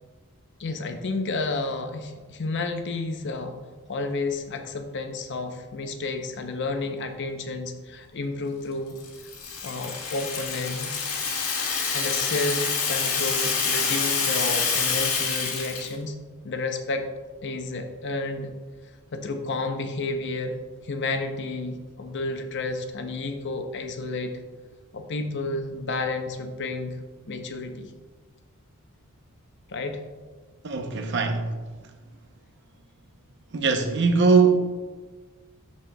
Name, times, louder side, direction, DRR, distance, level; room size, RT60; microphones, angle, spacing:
voice 1, 0.6-3.5 3.9-9.0 9.6-11.0 11.9-16.1 16.4-17.1 17.4-18.5 19.1-20.5 20.8-24.4 24.9-27.0 27.3-27.9 29.7-30.0, left 3 dB, 55° left, 0.6 m, -31 dB
Rattle (instrument), 9.0-15.9, left 5 dB, 80° left, 1.5 m, -27 dB
voice 2, 30.6-31.6 33.5-34.7, right 4 dB, 55° right, 0.7 m, -21 dB
12.5 x 4.2 x 2.2 m
head